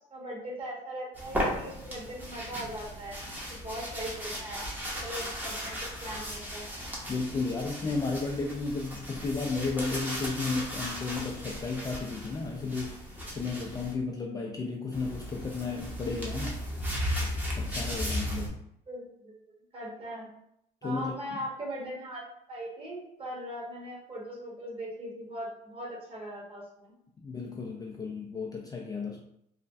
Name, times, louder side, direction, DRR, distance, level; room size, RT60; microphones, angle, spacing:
voice 1, 0.1-3.2 3.5-4.7 5.0-6.7 18.9-20.3 20.8-26.9, equal, 35° right, -4 dB, 1.2 m, -40 dB
sound 1, 1.1-13.9 14.9-18.5, equal, 10° right, 0.7 m, -36 dB
voice 2, 7.1-13.0 13.3-16.6 17.6-18.5 20.8-21.1 27.2-29.2, left 4 dB, 20° left, 0 dB, 0.3 m, -33 dB
3.1 x 2.1 x 2.6 m, 0.75 s
cardioid pair, 110°, 17 cm